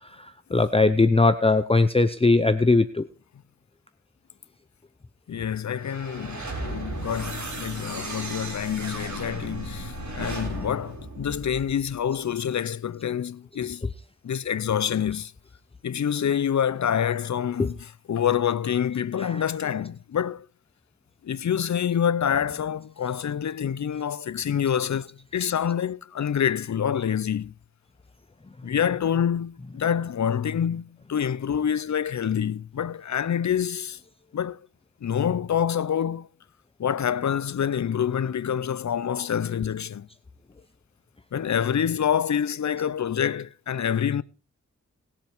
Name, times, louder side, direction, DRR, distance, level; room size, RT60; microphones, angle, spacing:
voice 1, 0.2-3.1 17.6-17.7 19.2-19.4, left 3 dB, 20° left, 0.7 m, -20 dB
voice 2, 5.3-13.9 14.2-15.3 15.8-20.5 21.2-27.5 28.6-34.0 34.3-34.6 35.0-36.3 36.8-40.1 41.3-44.2, left 8 dB, 70° left, 0.7 m, -27 dB
sound 1, 5.7-12.0, right 2 dB, 75° right, 5.2 m, -35 dB
19.5 x 7.5 x 4.7 m
wide cardioid pair, 125°, 29 cm